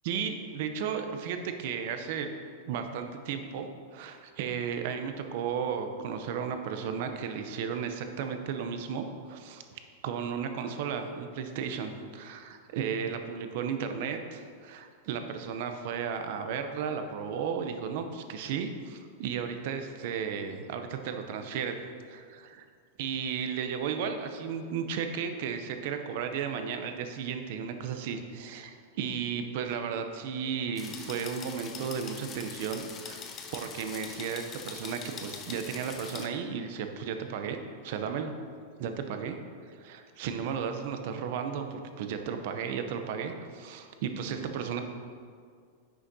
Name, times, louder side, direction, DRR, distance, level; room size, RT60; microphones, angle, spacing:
voice 1, 0.0-2.3 2.7-21.8 22.1-22.6 23.0-33.2 33.5-37.6 37.8-38.3 38.8-39.4 39.6-44.8, right 7 dB, 45° right, 6 dB, 0.6 m, -34 dB
sound 1, 30.8-36.3, left 6 dB, 20° left, 0.4 m, -43 dB
9.7 x 6.3 x 2.7 m, 2.2 s
supercardioid pair, 175°, 0 cm